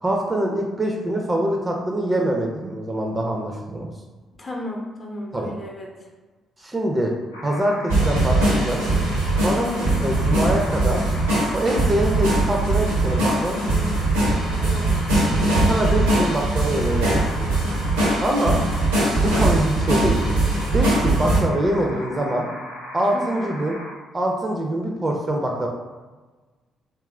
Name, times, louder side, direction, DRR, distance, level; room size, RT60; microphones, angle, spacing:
voice 1, 0.0-3.9 5.3-5.5 6.6-7.1 7.4-8.8 9.4-11.0 11.5-13.8 15.6-17.5 18.2-18.6 19.2-20.2 20.7-22.5 22.9-23.8 24.1-25.7, right 1 dB, 25° right, 1 dB, 0.4 m, -24 dB
voice 2, 4.4-5.9 9.6-9.9 14.6-14.9 23.1-23.5, left 1 dB, 35° left, -1 dB, 0.6 m, -33 dB
sound 1, 7.3-23.9, left 1 dB, 85° left, 0.4 m, -37 dB
sound 2, 7.9-21.4, right 2 dB, 85° right, 0.6 m, -21 dB
2.8 x 2.4 x 2.2 m, 1.3 s
hypercardioid pair, 45°, 0 cm